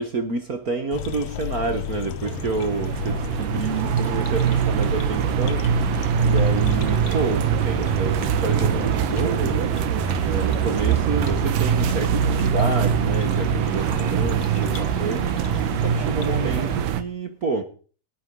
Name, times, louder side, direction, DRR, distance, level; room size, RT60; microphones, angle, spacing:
voice 1, 0.0-5.9 6.2-9.8 10.2-15.4 15.8-17.6, right 4 dB, 55° right, 1.0 m, -29 dB
sound 1, 0.9-16.8, left 10 dB, 65° left, 1.8 m, -33 dB
sound 2, 2.2-17.0, right 8 dB, 85° right, 2.7 m, -23 dB
19.0 x 7.7 x 5.5 m
omnidirectional pair, 3.8 m